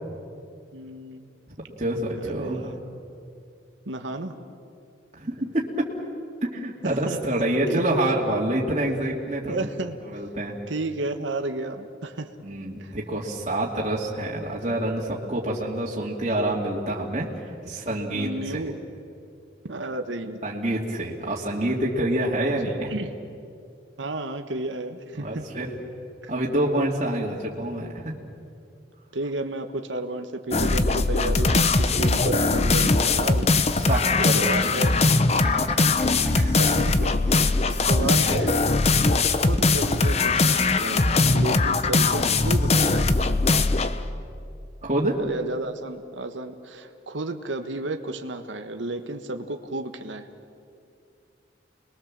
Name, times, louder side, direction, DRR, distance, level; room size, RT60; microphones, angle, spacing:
voice 1, 0.7-1.3 2.1-2.7 3.9-4.4 6.8-7.2 7.7-7.8 9.5-10.0 10.7-12.3 12.8-12.9 18.1-18.7 19.6-20.4 22.9-23.2 24.0-25.4 26.2-26.3 29.1-33.5 34.3-35.0 36.0-38.7 39.4-41.1 41.3-43.1 45.2-50.3, right 2 dB, 80° right, 6 dB, 1.4 m, -32 dB
voice 2, 1.8-2.7 5.1-5.6 6.4-9.6 10.1-10.6 12.4-17.3 17.6-18.7 20.4-23.0 25.2-25.7 26.3-28.1 33.7-34.7 35.4-35.5 36.3-36.5 44.8-45.2, right 1 dB, 35° right, -4 dB, 2.4 m, -27 dB
sound 1, 30.5-44.0, left 3 dB, 35° left, 0.8 m, -21 dB
sound 2, 33.1-38.0 38.5-38.8, right 1 dB, 5° right, 4.7 m, -43 dB
29.5 x 21.5 x 7.5 m, 2.5 s
head